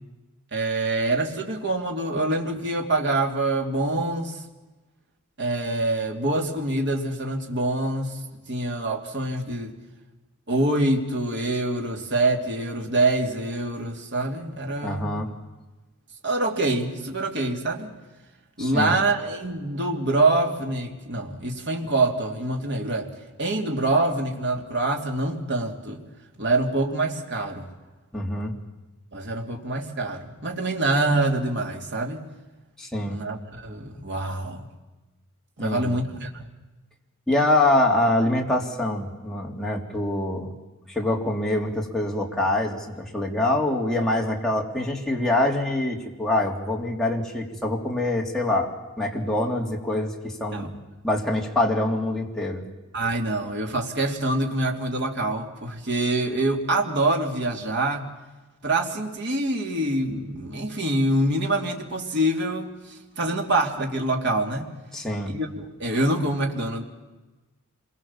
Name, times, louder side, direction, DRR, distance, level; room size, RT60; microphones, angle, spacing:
voice 1, 0.5-4.4 5.4-8.2 8.5-9.7 10.5-15.2 16.2-17.9 18.6-23.1 23.4-26.0 26.4-27.7 29.1-32.3 33.0-34.7 35.6-36.3 50.5-50.7 52.9-58.1 58.6-62.8 63.2-64.7 65.2-66.8, right 2 dB, 60° right, 2 dB, 3.1 m, -25 dB
voice 2, 14.8-15.3 18.6-19.0 28.1-28.5 32.8-33.2 35.6-36.0 37.3-40.5 40.9-50.8 51.0-52.6 64.9-65.3, left 1 dB, 5° left, -1 dB, 3.2 m, -25 dB
27.0 x 23.0 x 7.4 m, 1.2 s
head